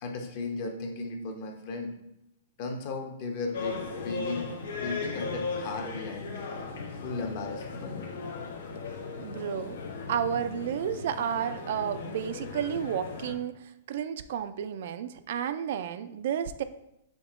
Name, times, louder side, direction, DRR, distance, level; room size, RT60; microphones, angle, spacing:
voice 1, 0.0-1.9 2.6-4.5 4.7-6.5 7.0-8.1, left 3 dB, 45° left, 3 dB, 0.8 m, -36 dB
sound 1, 3.5-13.3, left 4 dB, 80° left, 0.8 m, -37 dB
voice 2, 9.2-9.8 10.1-16.6, right 9 dB, 60° right, 11 dB, 0.3 m, -32 dB
5.1 x 2.8 x 3.5 m, 0.83 s
hypercardioid pair, 150°, 0 cm